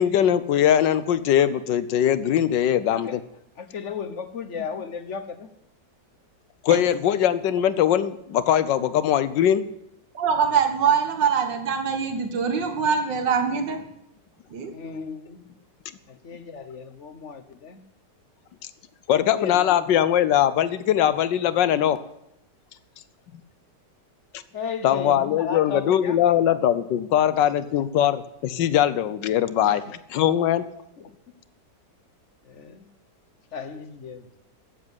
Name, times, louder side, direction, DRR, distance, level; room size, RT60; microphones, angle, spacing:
voice 1, 0.0-3.2 6.6-9.7 19.1-22.0 24.8-29.8 30.1-30.6, left 10 dB, 85° left, 1.5 m, -21 dB
voice 2, 3.6-5.5 14.7-15.4 16.1-17.8 19.1-20.0 24.5-26.5 29.7-29.9 31.0-31.1 32.4-32.9 33.5-34.2, left 6 dB, 45° left, 1.3 m, -35 dB
voice 3, 10.1-13.8 14.5-14.7, right 6 dB, 85° right, 2.2 m, -23 dB
14.5 x 7.6 x 9.7 m
omnidirectional pair, 1.9 m